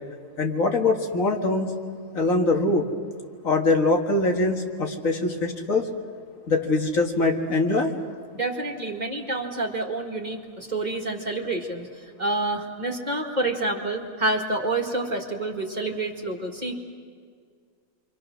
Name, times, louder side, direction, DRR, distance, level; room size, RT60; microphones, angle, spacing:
voice 1, 0.4-1.7 2.1-2.8 3.4-5.9 6.5-7.9, left 2 dB, 65° left, 2 dB, 2.2 m, -23 dB
voice 2, 8.3-11.9 12.2-16.7, right 2 dB, 30° right, 1 dB, 2.1 m, -28 dB
30.0 x 24.5 x 6.3 m, 2.1 s
omnidirectional pair, 1.5 m